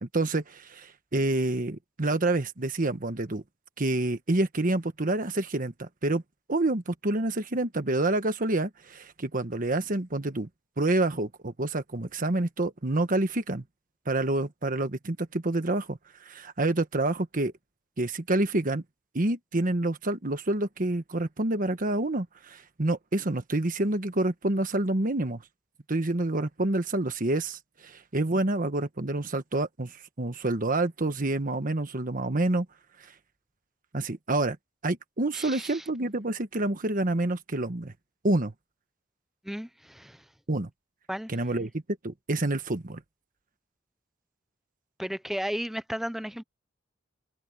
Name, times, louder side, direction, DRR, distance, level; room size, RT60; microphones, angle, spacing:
voice 1, 0.0-3.4 3.8-6.2 6.5-10.5 10.8-13.6 14.1-17.5 18.0-18.8 19.1-25.4 25.9-29.9 30.2-32.7 33.9-34.6 34.8-37.9 38.2-38.5 40.5-40.7 41.3-41.7 42.0-43.0, right 2 dB, 45° right, 1.3 m, -28 dB
voice 2, 35.3-35.8 39.4-40.2 41.1-41.3 45.0-46.4, equal, ahead, 0.6 m, -34 dB
open air
head